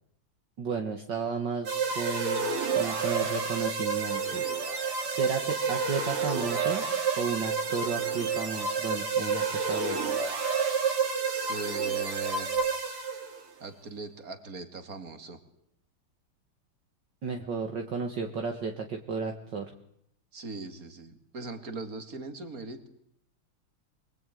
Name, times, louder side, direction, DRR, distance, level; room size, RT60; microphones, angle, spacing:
voice 1, 0.6-2.4 2.8-4.5 5.1-6.9 7.2-10.1 17.2-19.7, right 5 dB, 55° right, 3 dB, 2.4 m, -33 dB
sound 1, 1.7-13.4, right 5 dB, 85° right, 3.6 m, -29 dB
voice 2, 11.2-12.5 13.6-15.4 20.3-22.9, right 3 dB, 40° right, 8 dB, 2.9 m, -40 dB
26.5 x 20.5 x 9.3 m, 0.73 s
omnidirectional pair, 2.4 m